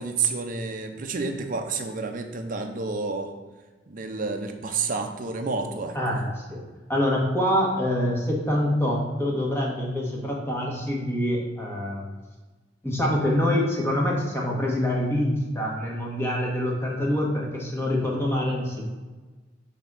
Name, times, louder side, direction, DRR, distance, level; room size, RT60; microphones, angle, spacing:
voice 1, 0.0-3.3 3.9-6.0, right 4 dB, 45° right, 5 dB, 0.6 m, -29 dB
voice 2, 5.9-6.6 6.9-12.1 12.8-18.9, left 1 dB, 15° left, -3 dB, 1.4 m, -25 dB
6.2 x 3.6 x 5.5 m, 1.3 s
head